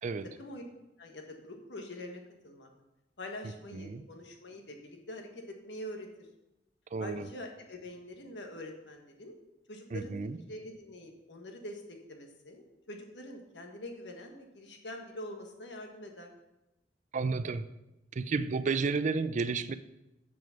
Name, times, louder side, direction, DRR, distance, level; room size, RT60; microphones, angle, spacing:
voice 1, 1.0-2.7 3.2-6.1 7.0-9.4 9.7-10.2 10.5-11.8 12.1-16.3, left 1 dB, 75° left, 3 dB, 1.4 m, -45 dB
voice 2, 3.7-4.0 6.9-7.3 9.9-10.4 17.1-17.7 18.1-19.8, right 4 dB, 40° right, 14 dB, 0.4 m, -32 dB
7.0 x 6.3 x 5.7 m, 0.94 s
head